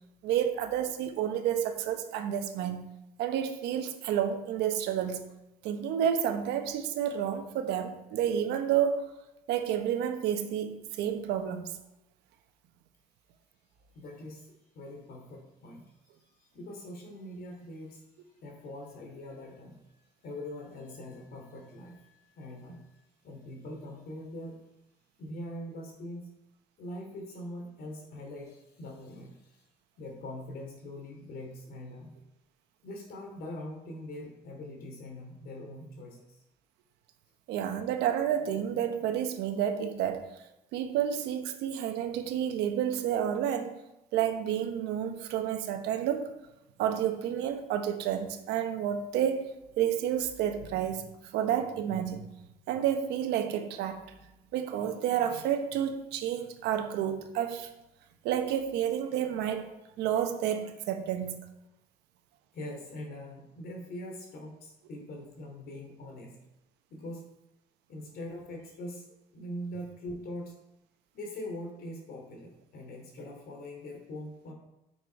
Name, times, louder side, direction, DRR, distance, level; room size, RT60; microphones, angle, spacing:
voice 1, 0.2-2.8 3.2-5.2 5.6-9.0 9.5-11.7 37.5-40.3 40.7-43.8 44.1-46.3 46.8-49.5 49.8-51.0 51.3-52.3 52.7-54.0 54.5-57.7 58.2-59.7 60.0-61.4, right 9 dB, 90° right, 1.1 m, -30 dB
voice 2, 13.9-18.0 18.4-19.8 20.2-24.6 25.2-26.3 26.8-29.6 30.0-32.1 32.8-36.4 62.5-66.4 66.9-67.2 67.9-70.5 71.1-74.5, left 1 dB, 65° left, 2.8 m, -43 dB
9.6 x 6.0 x 4.6 m
cardioid pair, 110°, 17 cm